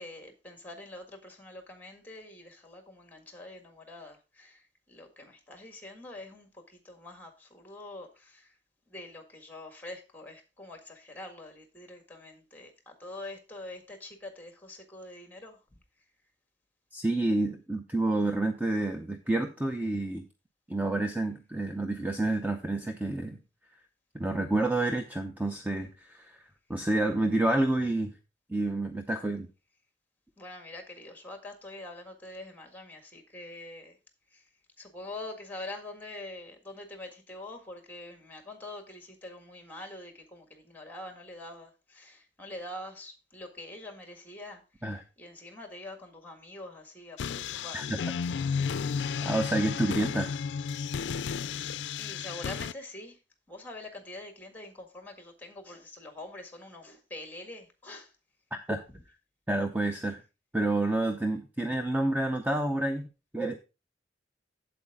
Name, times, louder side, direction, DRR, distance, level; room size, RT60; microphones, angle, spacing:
voice 1, 0.0-8.6 8.9-15.6 30.4-34.0 34.3-34.5 34.8-47.8 52.0-53.2 53.5-58.1, left 2 dB, 10° left, 1.7 m, -45 dB
voice 2, 16.9-20.2 20.7-23.4 24.1-26.4 26.7-28.1 28.5-29.5 44.8-45.0 47.7-47.9 49.2-50.4 58.5-58.8 59.5-60.2 60.5-63.1 63.3-63.6, right 2 dB, 10° right, 0.6 m, -29 dB
sound 1, 47.2-52.7, left 6 dB, 70° left, 0.4 m, -33 dB
8.2 x 7.9 x 3.6 m
head